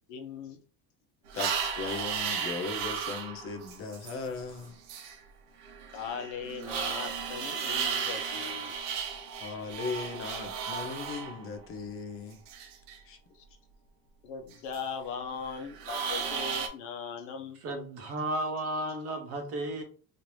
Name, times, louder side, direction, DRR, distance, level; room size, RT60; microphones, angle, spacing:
voice 1, 0.1-0.6 5.9-8.7 14.2-17.6, left 6 dB, 75° left, 5 dB, 0.8 m, -39 dB
voice 2, 1.3-4.8 9.4-12.4 13.0-13.2, left 4 dB, 35° left, 6 dB, 0.5 m, -38 dB
sound 1, 1.3-5.2 5.6-11.6 12.5-13.0 14.5-14.8 15.5-16.7, right 6 dB, 85° right, 0.8 m, -35 dB
voice 3, 17.5-19.8, right 1 dB, 35° right, 5 dB, 0.6 m, -33 dB
3.2 x 2.6 x 3.0 m, 0.40 s
cardioid pair, 180°, 40 cm